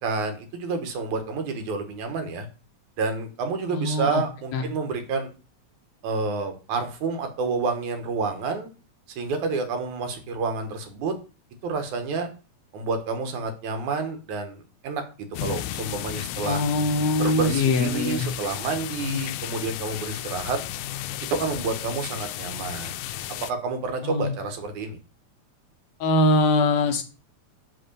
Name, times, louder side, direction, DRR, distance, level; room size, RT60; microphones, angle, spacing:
voice 1, 0.0-2.5 3.0-5.3 6.0-8.7 9.2-11.1 11.6-12.3 12.7-16.6 17.2-20.6 21.3-23.0 23.3-25.0, right 4 dB, 80° right, 6 dB, 2.7 m, -29 dB
voice 2, 3.7-4.2 4.5-4.6 16.4-18.3 19.0-19.3 24.0-24.3 26.0-27.0, left 2 dB, 70° left, 5 dB, 2.2 m, -22 dB
sound 1, 15.3-23.5, left 13 dB, 85° left, 2.0 m, -34 dB
8.4 x 3.6 x 6.8 m, 0.33 s
omnidirectional pair, 3.4 m